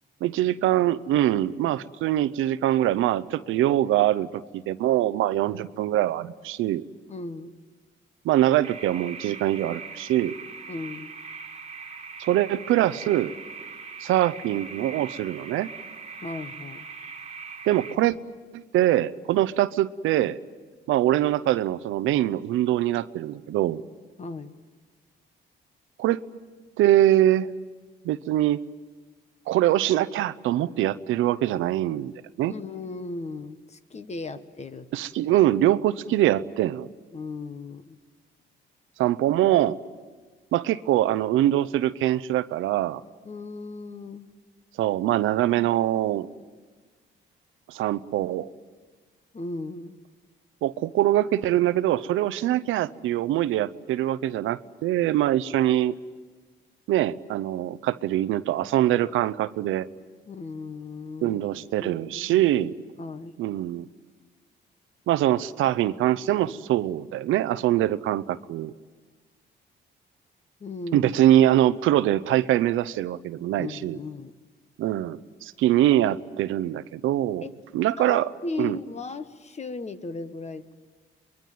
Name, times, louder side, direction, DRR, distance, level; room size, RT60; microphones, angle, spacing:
voice 1, 0.2-6.8 8.2-10.4 12.2-13.3 14.0-15.7 17.7-18.2 18.5-20.4 20.9-23.8 26.0-26.2 26.8-27.5 28.0-28.6 29.5-32.1 32.4-32.5 34.9-36.9 39.0-39.8 40.5-43.0 44.8-46.3 47.7-48.5 50.6-55.9 56.9-59.9 61.2-62.7 63.4-63.9 65.1-68.7 70.9-74.0 74.8-77.4 77.7-78.3 78.6-78.8, right 13 dB, 85° right, 16 dB, 0.7 m, -23 dB
voice 2, 7.1-7.5 10.7-11.1 16.2-16.9 24.2-24.5 32.5-34.9 37.1-38.0 43.2-44.3 49.3-50.0 60.3-61.4 61.8-62.4 63.0-63.4 70.6-71.1 73.6-74.3 77.4-77.5 78.0-80.7, left 3 dB, 35° left, 11 dB, 1.4 m, -36 dB
sound 1, 8.6-18.0, right 5 dB, 35° right, 2.0 m, -41 dB
24.0 x 22.0 x 9.3 m, 1.4 s
cardioid pair, 90°, 20 cm